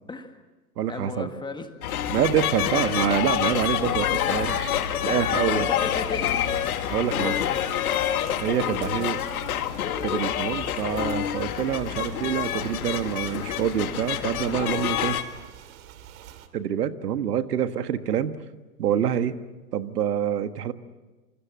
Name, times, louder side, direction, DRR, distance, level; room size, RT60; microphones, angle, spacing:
voice 1, 0.1-0.4 0.9-1.7 5.3-6.4 7.1-7.9, left 4 dB, 10° left, 7 dB, 1.7 m, -35 dB
voice 2, 0.8-1.3 2.1-4.7 5.0-5.7 6.9-7.3 8.4-9.2 10.0-15.2 16.5-18.4 18.8-19.4 19.7-20.7, right 9 dB, 70° right, 10 dB, 1.7 m, -26 dB
sound 1, 1.8-15.2, left 10 dB, 65° left, 2.2 m, -27 dB
sound 2, 1.9-16.5, right 11 dB, 55° right, 2.7 m, -45 dB
27.5 x 24.0 x 7.5 m, 1.2 s
hypercardioid pair, 130°, 48 cm